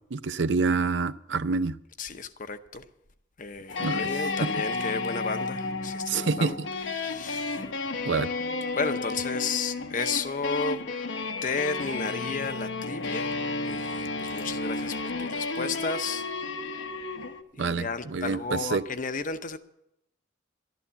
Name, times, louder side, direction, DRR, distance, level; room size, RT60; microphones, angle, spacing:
voice 1, 0.1-1.8 3.8-4.1 4.4-4.5 6.1-6.7 8.0-8.3 17.6-18.8, right 4 dB, 65° right, 0.5 m, -27 dB
voice 2, 2.0-2.8 3.4-6.6 6.9-7.6 8.8-10.8 11.4-13.3 13.6-16.3 17.5-19.6, left 4 dB, 45° left, 0.8 m, -33 dB
sound 1, 3.7-17.4, left 3 dB, 80° left, 1.0 m, -32 dB
12.5 x 11.5 x 6.9 m
head